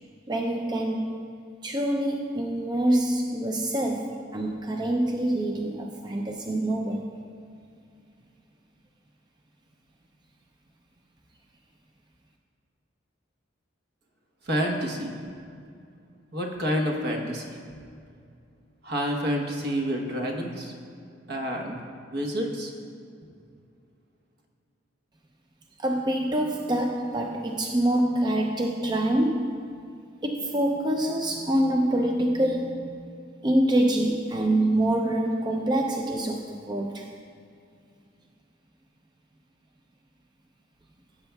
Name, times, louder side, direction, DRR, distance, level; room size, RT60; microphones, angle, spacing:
voice 1, 0.3-1.2 1.6-7.1 25.8-29.6 30.2-33.1 33.4-37.1, right 1 dB, 25° right, 2 dB, 0.4 m, -25 dB
voice 2, 14.4-15.2 16.3-17.6 18.8-20.7 21.3-21.8 22.1-22.7, equal, 60° right, 2 dB, 1.1 m, -28 dB
16.0 x 7.9 x 2.3 m, 2.4 s
head